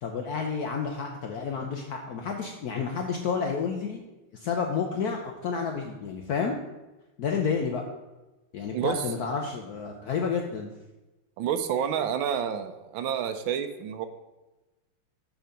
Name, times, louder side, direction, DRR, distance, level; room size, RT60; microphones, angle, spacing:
voice 1, 0.0-4.0 4.3-6.5 7.2-7.8 8.5-10.7, left 5 dB, 70° left, 2 dB, 0.9 m, -30 dB
voice 2, 8.7-9.0 11.4-14.1, right 8 dB, 75° right, 9 dB, 1.3 m, -29 dB
6.5 x 5.0 x 5.0 m, 1.1 s
omnidirectional pair, 2.3 m